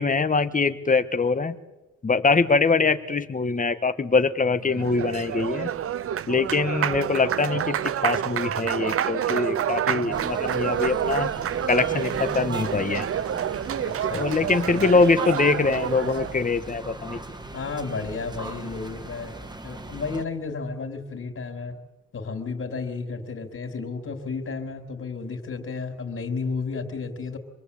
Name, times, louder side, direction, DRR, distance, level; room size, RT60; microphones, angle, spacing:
voice 1, 0.0-1.6 2.0-5.7 6.3-11.3 11.7-13.1 14.1-17.2, left 4 dB, 25° left, 10 dB, 1.7 m, -23 dB
Applause, 4.6-16.4, right 9 dB, 50° right, 0.8 m, -28 dB
voice 2, 6.3-6.7 9.7-10.5 13.8-14.9 17.1-17.3 17.5-19.4 19.6-21.8 22.1-27.4, left 4 dB, 50° left, 3 dB, 3.8 m, -33 dB
sound 1, 10.1-20.2, right 2 dB, 15° right, 2.0 m, -38 dB
26.0 x 20.5 x 8.7 m, 1.0 s
cardioid pair, 90°, 30 cm